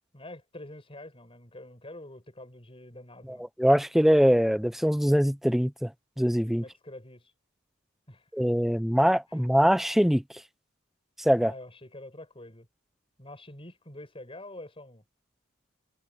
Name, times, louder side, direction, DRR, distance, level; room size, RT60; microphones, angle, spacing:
voice 1, 0.1-3.5 6.5-7.3 8.1-8.5 9.3-9.4 11.4-12.7 13.2-15.0, left 1 dB, 25° left, 6.7 m, -46 dB
voice 2, 3.6-5.9 6.2-6.6 8.3-10.2 11.2-11.5, equal, ahead, 0.6 m, -22 dB
head